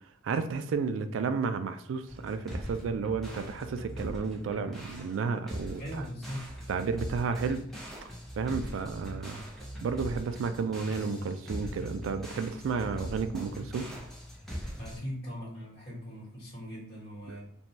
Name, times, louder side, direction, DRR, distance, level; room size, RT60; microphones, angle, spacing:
voice 1, 0.2-6.0 6.7-7.7 8.4-9.4 9.8-13.9 17.3-17.4, right 5 dB, 65° right, 9 dB, 0.3 m, -32 dB
sound 1, 2.1-15.0, equal, ahead, 0.5 m, -41 dB
voice 2, 5.8-6.5 14.8-17.4, equal, 55° left, -6 dB, 1.3 m, -40 dB
2.6 x 2.2 x 3.0 m, 0.65 s
head